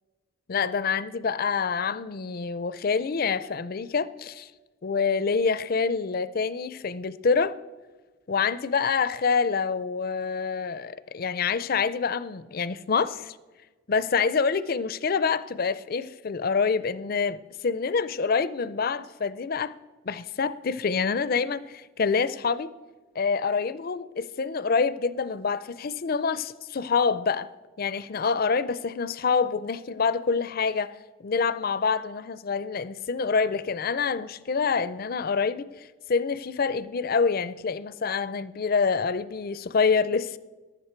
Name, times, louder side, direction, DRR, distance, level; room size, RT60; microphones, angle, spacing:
voice 1, 0.5-4.5 4.8-7.5 8.3-13.4 13.9-19.8 20.0-22.7 23.2-27.5 27.8-30.9 31.2-40.4, left 5 dB, 45° left, 0.4 m, -26 dB
15.0 x 11.0 x 4.5 m
head